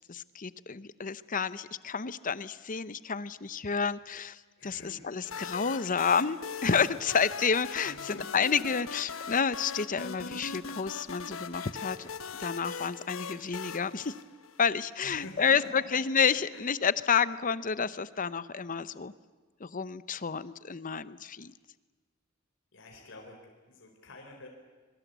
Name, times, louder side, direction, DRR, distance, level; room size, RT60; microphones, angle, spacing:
voice 1, 0.1-12.1 12.4-14.1 14.6-19.1 19.6-21.5, left 6 dB, 40° left, 16 dB, 0.8 m, -30 dB
voice 2, 4.5-5.5 7.8-8.7 15.0-15.9 16.5-16.7 22.7-24.5, left 1 dB, 65° left, 2 dB, 4.0 m, -49 dB
sound 1, 5.2-14.9, left 5 dB, 85° left, 1.2 m, -40 dB
26.5 x 22.5 x 8.2 m, 1.3 s
head